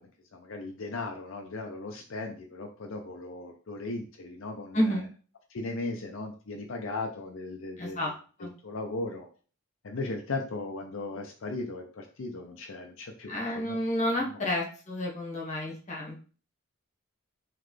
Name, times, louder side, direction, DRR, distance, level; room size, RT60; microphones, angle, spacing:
voice 1, 0.0-5.0 5.5-8.0 8.6-9.3 9.8-13.8, left 3 dB, 70° left, 2 dB, 0.5 m, -37 dB
voice 2, 4.7-5.0 7.8-8.1 8.4-8.5 13.3-16.2, equal, 35° left, -2 dB, 1.2 m, -30 dB
3.9 x 3.3 x 3.2 m, 0.38 s
head